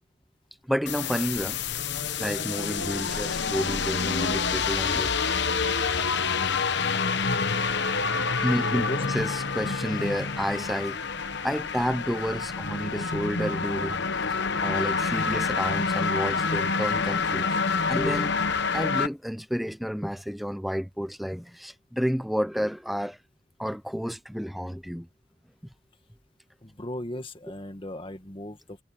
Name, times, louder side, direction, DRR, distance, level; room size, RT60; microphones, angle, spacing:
voice 1, 0.7-1.6 2.2-5.1 7.1-7.3 8.4-14.0 14.3-17.6 17.9-23.2 23.6-25.1, equal, ahead, 0.6 m, -31 dB
sound 1, 0.9-19.1, left 5 dB, 55° left, 1.1 m, -27 dB
voice 2, 8.6-9.1 26.6-28.8, left 1 dB, 25° left, 2.1 m, -37 dB
head